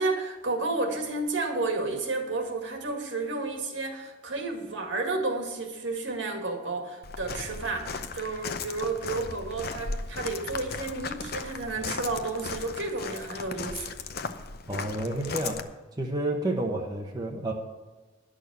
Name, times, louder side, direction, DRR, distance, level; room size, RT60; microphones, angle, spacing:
voice 1, 0.0-13.9, right 3 dB, 65° right, 3 dB, 2.0 m, -31 dB
Walk footsteps, 7.0-15.6, left 4 dB, 55° left, 0.7 m, -37 dB
voice 2, 14.7-15.6 16.0-17.5, right 1 dB, 20° right, 0 dB, 1.0 m, -30 dB
11.0 x 6.4 x 8.1 m, 1.2 s
head